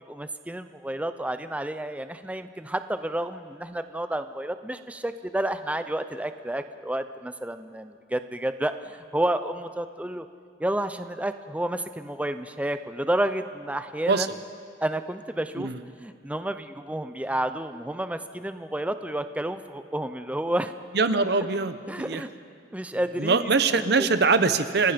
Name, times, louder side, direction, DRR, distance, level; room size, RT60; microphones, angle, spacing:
voice 1, 0.1-10.3 10.6-14.3 14.8-15.7 16.0-20.7 21.9-22.3 22.7-24.1, right 1 dB, 10° right, 10 dB, 0.5 m, -30 dB
voice 2, 20.9-22.3 23.2-24.9, right 4 dB, 65° right, 11 dB, 0.9 m, -23 dB
29.5 x 17.5 x 5.2 m, 2.3 s
head